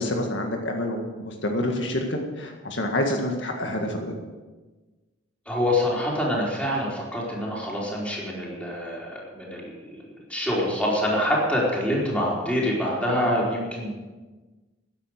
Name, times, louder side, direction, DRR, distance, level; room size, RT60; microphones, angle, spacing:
voice 1, 0.0-4.1 12.0-12.2 13.1-13.3, left 1 dB, 75° left, 2 dB, 1.9 m, -28 dB
voice 2, 5.5-10.0 10.3-13.9, left 1 dB, 5° left, -5 dB, 4.7 m, -26 dB
14.5 x 10.5 x 6.6 m, 1.3 s
head